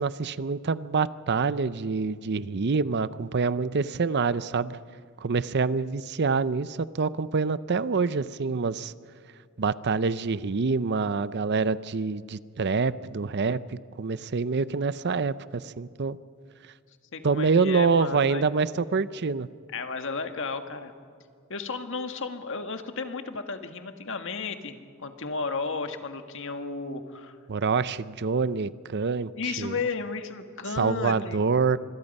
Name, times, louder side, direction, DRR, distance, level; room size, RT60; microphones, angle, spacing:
voice 1, 0.0-4.8 5.2-8.9 9.6-16.2 17.2-19.5 27.5-29.7 30.8-31.8, right 4 dB, 50° right, 16 dB, 0.6 m, -26 dB
voice 2, 17.1-18.5 19.7-20.9 21.5-27.4 29.4-31.4, left 4 dB, 60° left, 7 dB, 1.7 m, -33 dB
26.5 x 21.5 x 5.4 m, 2.3 s
head